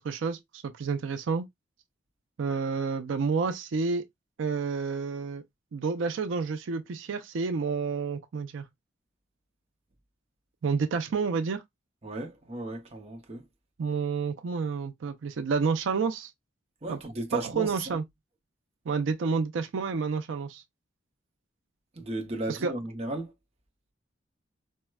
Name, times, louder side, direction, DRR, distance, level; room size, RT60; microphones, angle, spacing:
voice 1, 0.0-1.5 2.4-4.0 4.4-5.4 5.7-8.6 10.6-11.6 13.8-16.3 16.9-17.0 17.4-18.0 18.9-20.6 22.5-22.7, right 5 dB, 85° right, 0.4 m, -29 dB
voice 2, 12.0-13.4 16.8-18.0 22.0-23.3, right 1 dB, 30° right, 0.6 m, -35 dB
4.4 x 2.1 x 2.2 m
head